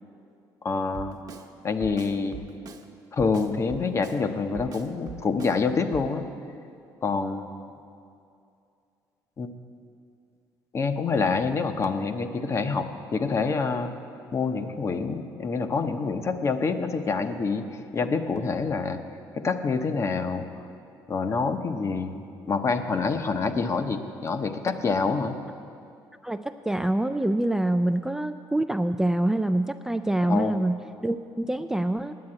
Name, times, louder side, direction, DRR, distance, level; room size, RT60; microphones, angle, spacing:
voice 1, 0.6-1.2 1.6-2.4 3.1-6.2 7.0-7.5 9.4-9.5 10.7-13.9 14.3-19.0 19.4-20.5 21.1-25.4 30.3-30.5, left 4 dB, 35° left, 8 dB, 0.8 m, -27 dB
Drum kit, 0.9-1.5 1.8-2.9 3.2-4.2 4.5-5.6 5.9-6.1, right 6 dB, 45° right, 1.0 m, -42 dB
voice 2, 26.2-32.2, right 1 dB, 5° right, 7 dB, 0.3 m, -26 dB
9.4 x 8.6 x 8.6 m, 2.5 s
cardioid pair, 100°, 8 cm